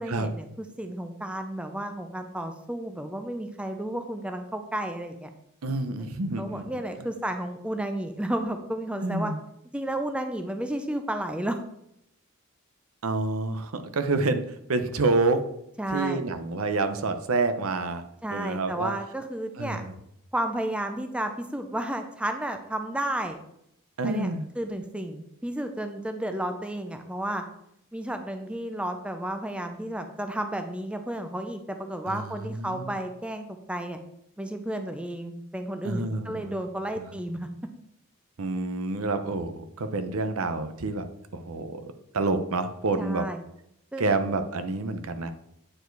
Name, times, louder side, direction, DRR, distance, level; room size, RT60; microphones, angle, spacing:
voice 1, 0.0-5.3 6.0-6.1 6.4-9.3 9.7-11.6 15.8-16.2 18.2-19.8 20.3-23.4 24.0-24.3 24.6-27.4 27.9-34.0 34.4-37.5 43.0-43.4 43.9-44.1, right 1 dB, 5° right, 6 dB, 0.5 m, -32 dB
voice 2, 5.6-6.7 7.0-7.1 9.0-9.4 13.0-15.4 15.9-18.0 18.3-18.9 19.6-20.0 24.0-24.5 32.1-32.9 35.8-36.6 38.4-41.1 41.3-43.2 44.0-45.3, right 3 dB, 80° right, 9 dB, 0.7 m, -28 dB
8.8 x 4.7 x 4.6 m, 0.77 s
head